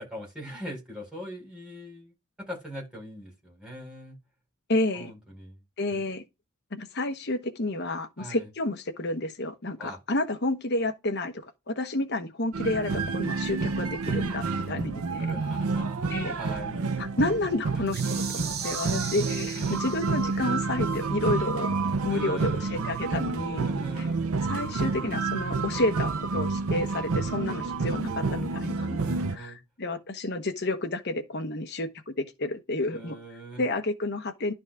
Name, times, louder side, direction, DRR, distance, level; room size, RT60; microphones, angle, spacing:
voice 1, 0.0-2.1 2.5-4.2 4.9-5.6 5.9-6.0 8.2-8.5 9.8-10.0 15.2-16.9 18.3-18.4 19.5-20.0 22.1-22.9 23.7-24.2 28.9-29.6 32.9-33.7, equal, 5° right, 4.6 m, -41 dB
voice 2, 4.7-5.1 5.8-6.2 6.7-11.3 11.7-15.4 16.1-16.4 17.0-21.7 22.0-23.7 24.4-29.0 29.3-33.2 33.6-34.5, left 2 dB, 50° left, 1.1 m, -30 dB
sound 1, 12.5-29.4, right 4 dB, 75° right, 0.7 m, -29 dB
sound 2, 17.9-20.4, right 8 dB, 45° right, 0.8 m, -37 dB
11.5 x 4.2 x 3.5 m
head